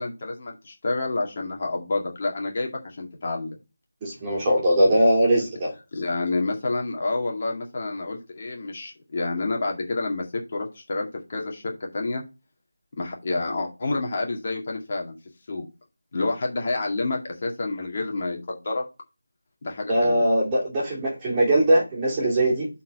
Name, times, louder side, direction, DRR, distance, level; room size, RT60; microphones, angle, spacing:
voice 1, 0.0-3.6 5.9-10.3 10.5-12.2 12.9-15.2 15.5-15.7 16.1-18.8 19.6-20.2, left 3 dB, 35° left, 0 dB, 2.0 m, -29 dB
voice 2, 4.0-5.7 19.9-22.7, right 1 dB, 15° right, -5 dB, 2.9 m, -21 dB
7.4 x 4.3 x 5.4 m, 0.30 s
figure-of-eight pair, 170°, 0 cm